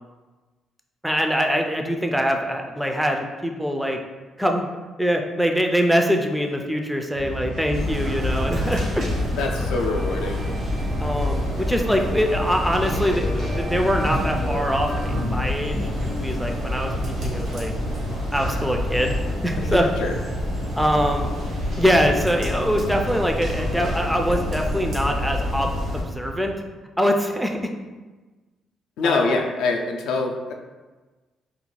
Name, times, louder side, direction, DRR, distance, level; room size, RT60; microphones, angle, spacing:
voice 1, 1.0-4.0 4.4-4.7 5.0-9.1 11.0-17.7 18.3-19.1 19.4-19.9 20.8-21.3 21.8-26.5 27.0-27.6 29.0-29.4, equal, ahead, 2 dB, 0.3 m, -23 dB
sound 1, 7.1-26.6, right 1 dB, 90° right, 0.4 m, -37 dB
sound 2, 7.7-26.0, left 1 dB, 70° right, 1.1 m, -27 dB
voice 2, 9.3-10.4 19.6-20.1 29.0-30.5, left 3 dB, 85° left, 2 dB, 0.3 m, -25 dB
sound 3, 9.6-15.2, right 1 dB, 40° right, 0.6 m, -36 dB
2.4 x 2.1 x 3.1 m, 1.3 s
cardioid pair, 90°, 0 cm